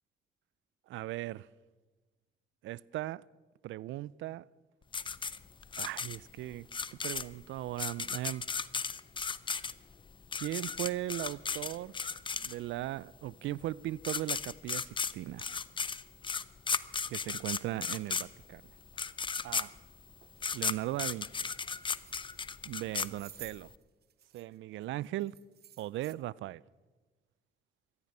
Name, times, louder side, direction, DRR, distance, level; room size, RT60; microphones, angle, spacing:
voice 1, 0.9-1.5 2.6-3.2 3.6-4.4 5.8-8.4 10.3-11.9 12.4-15.5 17.1-18.6 19.4-19.7 20.5-21.5 22.6-23.7 24.3-25.3 25.8-26.6, right 15 dB, 80° right, 0.4 m, -38 dB
sound 1, 4.9-12.9 13.7-13.8 14.0-23.7, left 5 dB, 25° left, 0.5 m, -35 dB
sound 2, 18.3-18.4 18.9-19.1 19.6-19.7 20.2-20.4 20.7-21.1 21.7-22.4 22.7-24.6 24.8-26.1, right 9 dB, 55° right, 0.8 m, -54 dB
16.5 x 14.0 x 5.5 m
cardioid pair, 90°, 20 cm